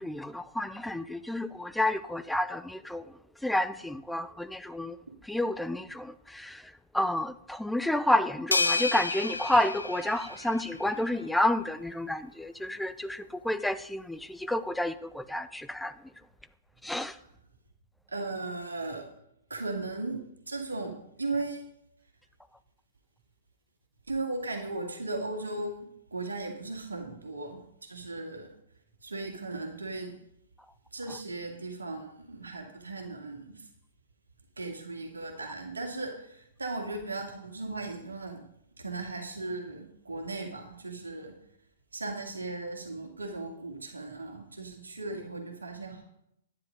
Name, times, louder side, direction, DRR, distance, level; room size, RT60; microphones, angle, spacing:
voice 1, 0.0-3.0 3.4-5.0 5.2-6.6 6.9-15.9 16.8-17.2, left 1 dB, 5° left, 0.5 m, -30 dB
sound 1, 8.5-11.0, left 3 dB, 85° left, 0.7 m, -30 dB
voice 2, 18.1-19.1 19.5-20.2 20.5-20.9 21.2-21.7 24.1-25.8 26.1-28.5 29.0-30.1 30.9-33.7 34.6-38.4 38.8-41.3 41.9-46.0, right 2 dB, 80° right, 2.3 m, -37 dB
11.5 x 9.9 x 5.2 m
figure-of-eight pair, 110°, 0 cm